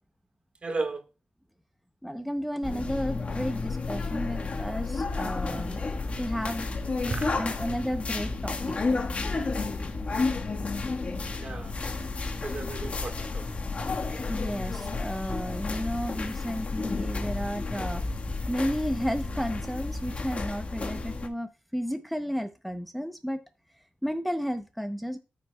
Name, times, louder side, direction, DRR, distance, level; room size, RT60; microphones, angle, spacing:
voice 1, 0.6-1.0 7.0-7.4 11.3-11.8 12.4-13.5, right 3 dB, 45° right, 1.7 m, -34 dB
voice 2, 2.0-5.8 6.2-6.7 7.3-9.1 14.3-18.0 18.5-23.4 24.0-25.2, equal, ahead, 0.8 m, -32 dB
sound 1, 2.6-21.3, left 3 dB, 45° left, 1.5 m, -31 dB
13.5 x 6.5 x 2.3 m
wide cardioid pair, 100°, 3 cm